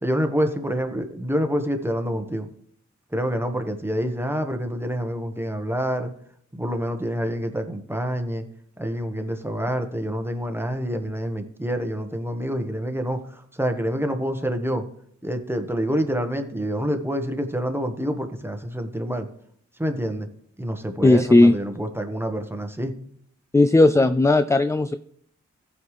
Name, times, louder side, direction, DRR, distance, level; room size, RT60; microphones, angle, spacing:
voice 1, 0.0-2.5 3.1-6.1 6.5-8.4 8.8-14.8 15.2-19.3 19.8-20.3 20.6-22.9, equal, 10° right, 5 dB, 1.3 m, -27 dB
voice 2, 21.0-21.5 23.5-24.9, left 2 dB, 10° left, 12 dB, 0.3 m, -16 dB
15.0 x 5.4 x 3.3 m, 0.65 s
cardioid pair, 55°, 29 cm